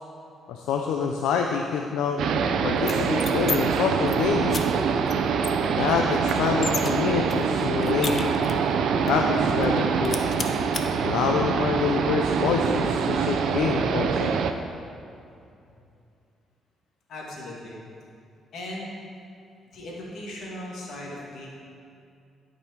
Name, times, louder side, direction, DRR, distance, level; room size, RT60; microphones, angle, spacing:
voice 1, 0.5-2.2 2.6-4.6 5.8-8.3 9.1-10.2 11.0-14.3, left 6 dB, 90° left, 2 dB, 0.5 m, -26 dB
sound 1, 2.2-14.5, right 6 dB, 75° right, 0.5 m, -24 dB
sound 2, 2.8-3.6 3.9-4.2 4.5-4.6 5.1-5.2 5.4-6.9 7.3-8.7 9.1-9.2 9.5-9.8 10.0-10.8, left 4 dB, 40° left, 0.7 m, -33 dB
voice 2, 17.1-17.8 18.5-19.0 19.7-21.6, left 1 dB, 70° left, -3 dB, 2.2 m, -38 dB
13.0 x 5.3 x 4.6 m, 2.5 s
cardioid pair, 90°, 0 cm